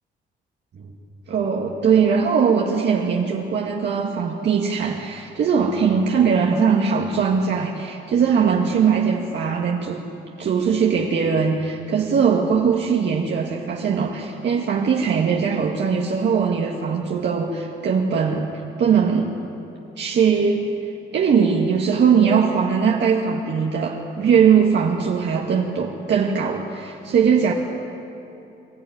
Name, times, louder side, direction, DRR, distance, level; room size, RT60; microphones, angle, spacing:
voice 1, 1.3-10.0 10.4-19.4 20.0-20.7 21.1-27.5, right 6 dB, 60° right, -1 dB, 2.0 m, -20 dB
24.5 x 13.0 x 9.6 m, 2.8 s
cardioid pair, 90°, 20 cm